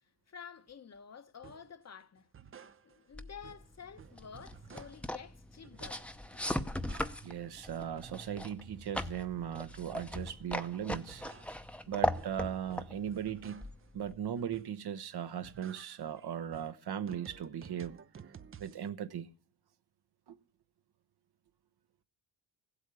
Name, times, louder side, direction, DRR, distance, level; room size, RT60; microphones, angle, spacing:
voice 1, 0.0-2.3 2.8-6.5, left 7 dB, 35° left, 0.9 m, -51 dB
sound 1, 1.4-1.7 2.2-3.2 3.4-5.2 5.6-6.3 6.5-7.5 7.8-10.5 10.9-13.9 14.4-15.0 15.3-18.9, right 7 dB, 30° right, 0.6 m, -54 dB
sound 2, 3.1-14.3, left 1 dB, 5° left, 0.7 m, -39 dB
voice 2, 7.2-11.2 11.9-13.7 13.9-18.0 18.6-19.3 20.3-20.4, right 9 dB, 60° right, 1.0 m, -38 dB
15.0 x 8.2 x 8.3 m
cardioid pair, 95°, 44 cm